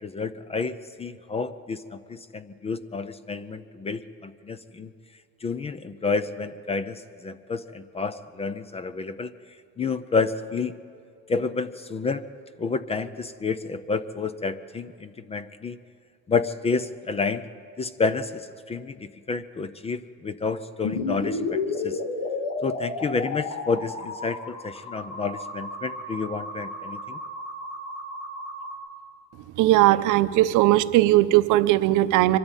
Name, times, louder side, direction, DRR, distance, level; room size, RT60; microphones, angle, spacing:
voice 1, 0.0-4.9 5.4-9.3 9.8-10.7 11.3-12.2 12.6-15.8 16.3-17.5 17.8-22.0 22.6-27.2, left 4 dB, 20° left, 14 dB, 0.4 m, -30 dB
sound 1, 20.8-28.7, left 3 dB, 80° left, 2.7 m, -32 dB
voice 2, 29.6-32.4, right 15 dB, 65° right, 14 dB, 0.7 m, -19 dB
23.5 x 13.0 x 8.9 m, 2.4 s
cardioid pair, 155°, 34 cm